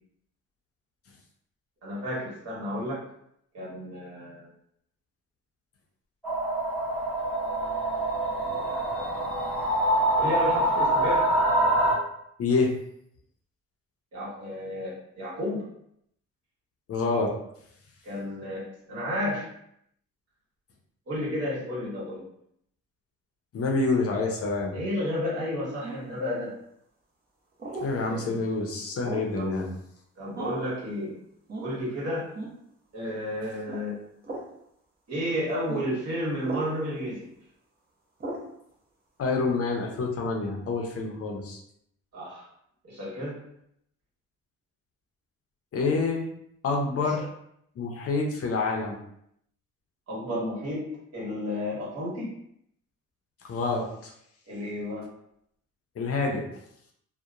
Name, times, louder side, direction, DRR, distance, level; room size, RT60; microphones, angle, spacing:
voice 1, 1.8-3.0 3.5-4.5 8.3-9.3 10.2-11.3 14.1-15.7 18.0-19.5 21.1-22.2 24.7-26.5 28.1-28.3 29.3-29.5 30.2-31.1 31.6-32.3 32.9-34.0 35.1-37.3 42.1-42.5 42.8-43.4 47.0-47.2 50.1-52.3 54.5-55.1, left 1 dB, 55° right, -6 dB, 1.4 m, -32 dB
sound 1, 6.2-11.9, right 1 dB, 5° left, 0.8 m, -25 dB
voice 2, 12.4-12.7 16.9-17.3 23.5-24.8 27.8-29.7 39.2-41.6 45.7-46.3 46.6-47.2 47.8-49.0 53.5-54.1 56.0-56.4, left 3 dB, 50° left, 1 dB, 0.6 m, -27 dB
sound 2, 25.8-26.2 27.6-27.9 29.0-29.4 30.3-30.7 31.5-31.7 32.3-32.6 33.6-33.8 34.2-34.5 35.7-35.8 36.4-36.7 38.2-38.5, right 2 dB, 30° right, 0.7 m, -36 dB
2.8 x 2.1 x 2.4 m, 0.73 s
cardioid pair, 90°, 30 cm